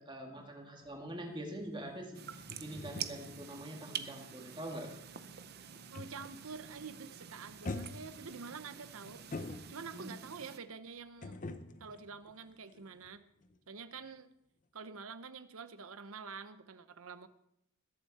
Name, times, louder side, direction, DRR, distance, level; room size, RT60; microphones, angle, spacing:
voice 1, 0.0-2.2 2.6-5.0 9.9-10.1, right 1 dB, 20° right, 1 dB, 2.1 m, -44 dB
sound 1, 0.8-6.5 6.8-7.2 7.6-10.2 11.2-13.1 13.4-13.6, left 2 dB, 35° left, 0.7 m, -47 dB
sound 2, 2.1-10.6, right 8 dB, 45° right, 0.7 m, -47 dB
voice 2, 5.9-9.3 9.7-11.4 11.8-13.2 13.7-14.3 14.7-17.3, right 5 dB, 75° right, 11 dB, 0.8 m, -47 dB
21.5 x 7.4 x 4.3 m, 0.77 s
head